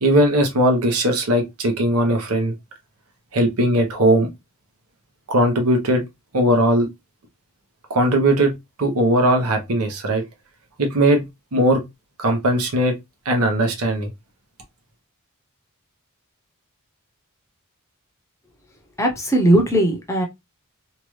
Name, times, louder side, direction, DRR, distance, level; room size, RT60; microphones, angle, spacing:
voice 1, 0.0-2.5 3.3-4.3 5.3-6.0 6.3-6.9 7.9-8.5 8.8-10.2 10.8-11.2 11.5-11.8 12.2-12.9 13.3-14.1, right 1 dB, 80° right, 0.9 m, -18 dB
voice 2, 19.0-20.3, right 1 dB, 15° left, 0.7 m, -18 dB
2.9 x 2.4 x 3.1 m
head